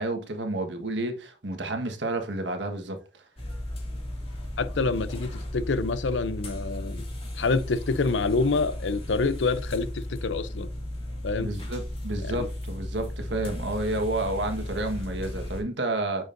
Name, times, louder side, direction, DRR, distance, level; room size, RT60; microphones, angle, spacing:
voice 1, 0.0-3.2 11.4-16.3, right 2 dB, 80° right, 1.4 m, -30 dB
sound 1, 3.4-15.6, left 1 dB, 30° left, 2.3 m, -35 dB
voice 2, 4.6-7.0 7.4-10.7 11.2-11.5 12.2-12.5, left 3 dB, 85° left, 0.6 m, -27 dB
9.0 x 6.2 x 2.6 m
head